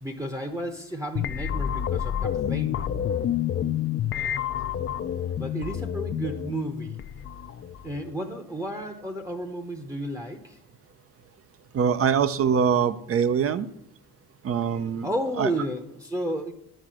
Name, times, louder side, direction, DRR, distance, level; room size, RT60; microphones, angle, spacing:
voice 1, 0.0-2.8 5.4-7.0 7.8-10.6 15.0-16.5, right 1 dB, 10° right, 3 dB, 0.8 m, -32 dB
sound 1, 1.1-8.0, left 10 dB, 40° left, 0.4 m, -29 dB
voice 2, 11.7-13.7 14.4-15.1 15.4-15.5, right 7 dB, 45° right, 13 dB, 0.6 m, -23 dB
10.0 x 4.8 x 7.5 m, 0.74 s
cardioid pair, 140°, 32 cm